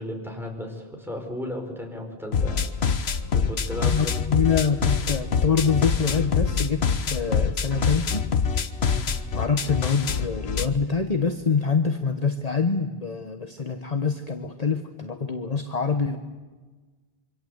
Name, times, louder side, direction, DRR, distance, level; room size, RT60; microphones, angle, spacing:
voice 1, 0.0-2.6 3.3-4.2 8.9-9.1, left 1 dB, ahead, 1 dB, 4.9 m, -34 dB
sound 1, 2.3-10.7, left 6 dB, 85° left, 1.3 m, -25 dB
voice 2, 3.9-8.2 9.3-16.2, left 5 dB, 40° left, 6 dB, 1.2 m, -25 dB
26.0 x 25.0 x 8.0 m, 1.3 s
omnidirectional pair, 1.0 m